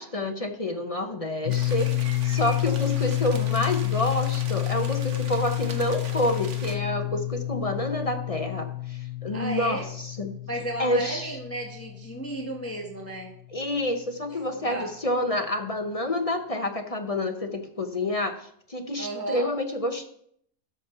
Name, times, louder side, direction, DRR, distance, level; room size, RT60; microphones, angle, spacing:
voice 1, 0.0-10.3 10.8-11.3 13.5-20.1, left 1 dB, 35° left, 6 dB, 0.6 m, -28 dB
sound 1, 1.4-13.2, left 18 dB, 80° left, 0.6 m, -29 dB
sound 2, 1.5-6.8, right 4 dB, 50° right, 1.5 m, -42 dB
voice 2, 9.3-9.9 10.5-13.3 14.5-14.9 19.0-19.5, right 2 dB, 10° left, 0 dB, 1.5 m, -34 dB
12.5 x 5.3 x 6.7 m, 0.68 s
omnidirectional pair, 1.8 m